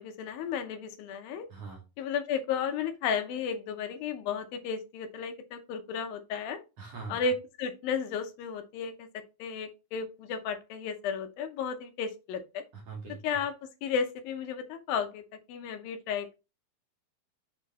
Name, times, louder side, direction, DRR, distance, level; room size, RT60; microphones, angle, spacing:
voice 1, 0.0-1.5 2.0-6.6 7.1-9.1 9.4-12.6 13.2-13.5 13.8-15.2 15.5-16.4, left 6 dB, 80° left, 7 dB, 2.6 m, -33 dB
voice 2, 1.5-1.8 6.8-7.2 12.7-13.2, right 4 dB, 55° right, 0 dB, 2.0 m, -42 dB
7.1 x 4.5 x 4.1 m, 0.28 s
omnidirectional pair, 4.2 m